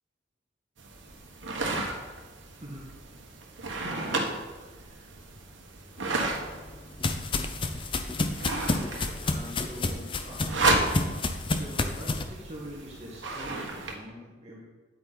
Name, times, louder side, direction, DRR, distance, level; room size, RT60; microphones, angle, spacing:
sound 1, 0.8-13.9, right 2 dB, 85° right, 1.4 m, -33 dB
voice 1, 2.5-2.9 4.0-5.0 9.2-10.7 11.1-14.6, equal, 35° right, -5 dB, 1.8 m, -44 dB
sound 2, 6.1-12.2, left 2 dB, 25° left, 0.6 m, -30 dB
9.9 x 8.6 x 4.2 m, 1.3 s
head